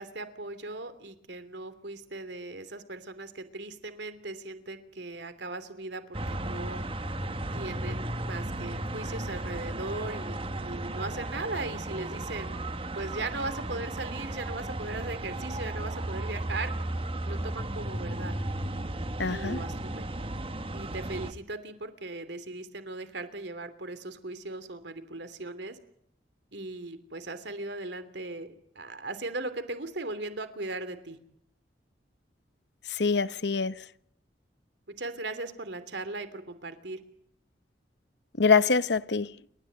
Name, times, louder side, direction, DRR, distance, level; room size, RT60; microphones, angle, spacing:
voice 1, 0.0-6.8 7.5-16.7 17.3-18.3 19.3-20.1 20.7-25.8 26.5-31.2 35.0-37.0, right 2 dB, 70° right, 3.1 m, -38 dB
sound 1, 6.1-21.3, right 1 dB, 30° right, 1.4 m, -35 dB
voice 2, 19.2-19.6 33.0-33.7 38.4-39.3, left 5 dB, 65° left, 0.9 m, -24 dB
29.5 x 14.0 x 9.4 m
head